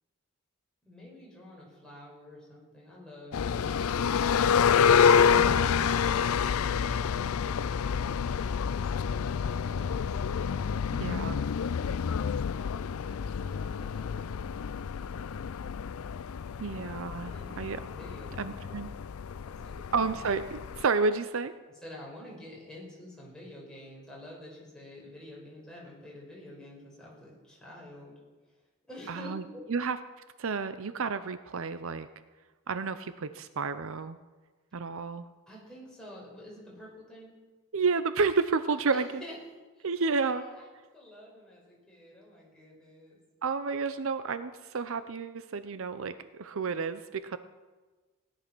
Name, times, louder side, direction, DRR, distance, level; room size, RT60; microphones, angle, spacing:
voice 1, 0.9-4.6 13.0-14.4 17.3-17.5 17.9-18.3 19.4-20.0 21.8-28.1 28.9-29.7 35.5-37.4 38.9-39.4 39.7-40.7 40.9-43.2, left 1 dB, 5° left, -5 dB, 5.4 m, -49 dB
sound 1, 3.3-20.8, left 7 dB, 70° left, 0.4 m, -28 dB
voice 2, 5.3-5.9 10.9-11.4 16.6-17.8 18.4-18.9 19.9-21.5 29.1-29.4 29.7-30.0 30.4-32.1 32.7-34.2 34.7-35.3 37.7-39.1 39.8-40.4 43.4-47.4, right 4 dB, 65° right, 12 dB, 0.6 m, -31 dB
17.0 x 11.0 x 6.1 m, 1.3 s
head